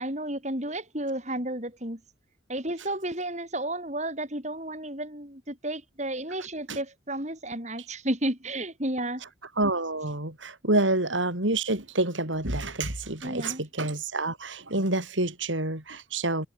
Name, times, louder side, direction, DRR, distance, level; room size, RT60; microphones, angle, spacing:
voice 1, 0.0-2.0 2.5-9.2 13.2-13.6, right 1 dB, 35° right, 7.2 m, -32 dB
voice 2, 9.6-16.5, right 2 dB, 80° right, 6.1 m, -28 dB
head